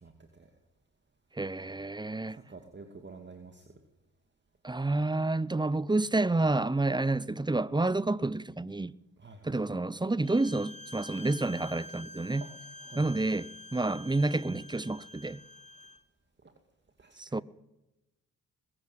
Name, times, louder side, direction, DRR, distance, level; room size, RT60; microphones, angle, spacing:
voice 1, 0.0-0.5 2.3-3.7 9.2-9.8 12.4-12.5 12.8-13.4 16.4-16.5 17.0-17.4, right 4 dB, 30° right, 2.5 m, -50 dB
voice 2, 1.3-2.4 4.6-8.9 9.4-12.4 13.0-15.4 17.2-17.4, right 2 dB, 15° right, 0.8 m, -29 dB
Bowed string instrument, 10.2-16.0, left 1 dB, 20° left, 1.9 m, -48 dB
21.0 x 15.0 x 9.3 m
supercardioid pair, 55°, 35 cm